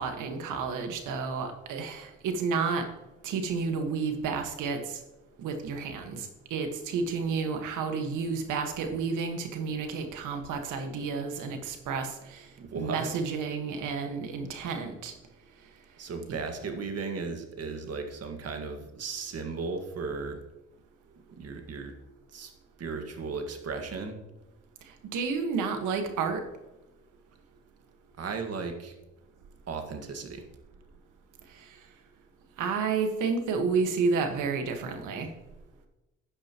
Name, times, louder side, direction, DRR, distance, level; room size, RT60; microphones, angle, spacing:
voice 1, 0.0-2.9 3.2-5.0 5.4-12.5 12.7-15.1 25.1-26.4 31.5-31.7 32.6-35.3, right 5 dB, 85° right, 6 dB, 1.6 m, -31 dB
voice 2, 12.6-13.1 16.0-20.4 21.1-21.9 22.3-22.5 22.8-24.2 28.2-29.0 29.7-30.4, right 4 dB, 55° right, 5 dB, 1.8 m, -36 dB
12.5 x 8.8 x 3.0 m, 1.0 s
cardioid pair, 90°, 30 cm